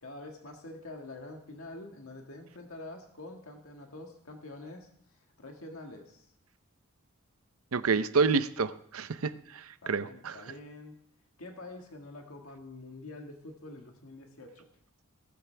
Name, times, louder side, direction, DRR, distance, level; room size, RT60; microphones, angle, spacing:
voice 1, 0.0-6.3 9.8-11.0 11.4-14.7, left 2 dB, 70° left, 2 dB, 1.8 m, -46 dB
voice 2, 7.7-10.3, right 4 dB, 75° right, 13 dB, 0.7 m, -29 dB
18.5 x 13.5 x 3.4 m, 0.68 s
head